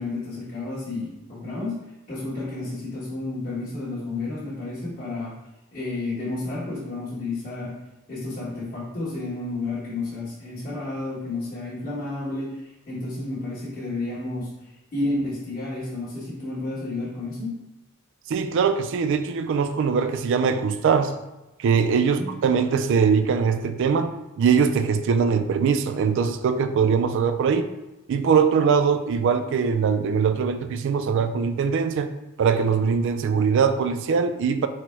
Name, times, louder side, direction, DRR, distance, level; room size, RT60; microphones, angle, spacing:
voice 1, 0.0-1.8 2.1-5.4 5.7-7.8 8.1-17.6 22.0-22.3, left 2 dB, 40° left, -12 dB, 1.4 m, -31 dB
voice 2, 18.3-21.1 21.6-27.7 28.1-32.1 32.4-34.7, right 6 dB, 60° right, 9 dB, 0.3 m, -22 dB
4.3 x 2.1 x 4.4 m, 1.0 s
head